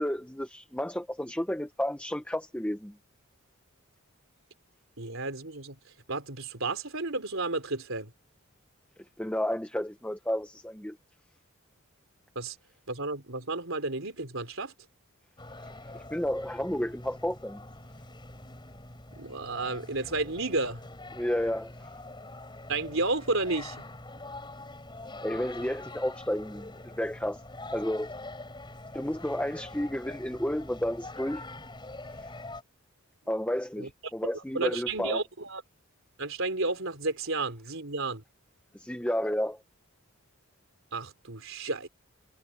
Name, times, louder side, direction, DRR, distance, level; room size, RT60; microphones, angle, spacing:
voice 1, 0.0-2.9 9.0-11.0 15.6-17.6 21.2-21.7 25.2-27.4 27.7-28.1 28.9-31.4 33.3-35.2 38.7-39.6, equal, 5° left, 1.1 m, -31 dB
voice 2, 5.0-5.8 6.1-8.1 12.3-12.6 12.9-14.7 19.1-20.8 22.7-23.8 33.8-33.9 34.5-35.6 36.2-38.2 40.9-41.9, right 3 dB, 65° right, 4.2 m, -32 dB
sound 1, 15.4-32.6, left 2 dB, 20° left, 4.7 m, -44 dB
head